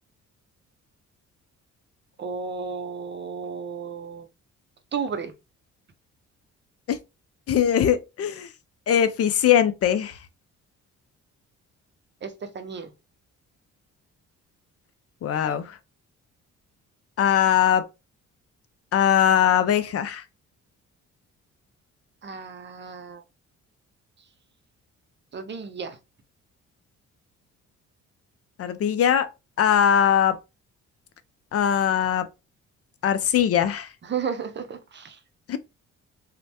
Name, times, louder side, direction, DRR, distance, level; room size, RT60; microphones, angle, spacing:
voice 1, 2.2-4.3 4.9-5.3 12.2-12.9 22.2-23.2 25.3-26.0 34.0-35.2, right 6 dB, 40° right, 0.6 m, -33 dB
voice 2, 7.5-8.5 8.9-10.2 15.2-15.8 17.2-17.9 18.9-20.2 28.6-29.3 29.6-30.4 31.5-32.3 33.0-33.9 35.5-35.6, left 9 dB, 50° left, 0.5 m, -21 dB
3.1 x 2.1 x 2.8 m
cardioid pair, 90°, 30 cm